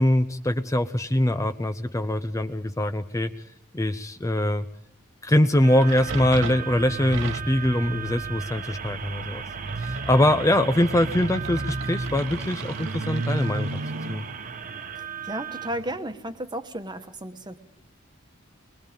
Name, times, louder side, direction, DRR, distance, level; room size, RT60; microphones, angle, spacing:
voice 1, 0.0-3.3 3.7-4.7 5.2-9.4 9.8-13.7 14.1-14.3, left 1 dB, 15° left, 9 dB, 0.7 m, -23 dB
sound 1, 5.6-15.7, right 8 dB, 40° right, 1.1 m, -37 dB
sound 2, 5.6-16.0, right 2 dB, 65° right, 1.2 m, -33 dB
voice 2, 14.9-17.6, right 1 dB, 20° right, 9 dB, 1.3 m, -34 dB
24.5 x 20.5 x 5.1 m, 0.79 s
head